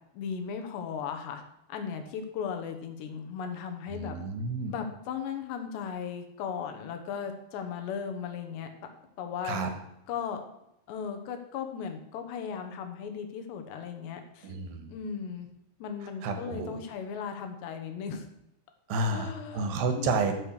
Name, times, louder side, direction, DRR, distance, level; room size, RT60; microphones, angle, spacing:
voice 1, 0.1-1.4 1.7-4.2 4.7-8.9 9.2-9.6 10.1-10.4 10.9-14.5 14.9-15.5 15.8-18.3 19.1-20.2, left 7 dB, 75° left, 6 dB, 3.2 m, -37 dB
voice 2, 4.0-4.7 9.4-9.7 14.4-14.9 16.2-16.8 18.9-20.3, right 3 dB, 75° right, 7 dB, 3.3 m, -30 dB
13.5 x 6.7 x 6.5 m, 0.82 s
omnidirectional pair, 5.3 m